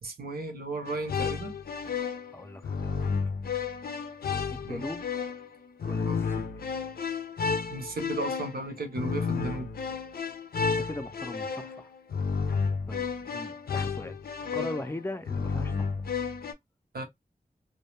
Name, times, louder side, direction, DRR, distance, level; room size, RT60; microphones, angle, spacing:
voice 1, 0.0-1.5 4.6-4.8 6.0-6.2 7.7-9.7 14.5-14.7 16.9-17.0, right 2 dB, 85° right, 0.7 m, -35 dB
sound 1, 0.9-16.5, left 5 dB, 80° left, 0.5 m, -32 dB
voice 2, 2.3-3.0 4.5-5.0 5.9-6.6 10.7-11.9 12.9-14.2 14.5-15.9, left 1 dB, 15° left, 0.4 m, -39 dB
2.2 x 2.2 x 3.0 m
wide cardioid pair, 55°, 15 cm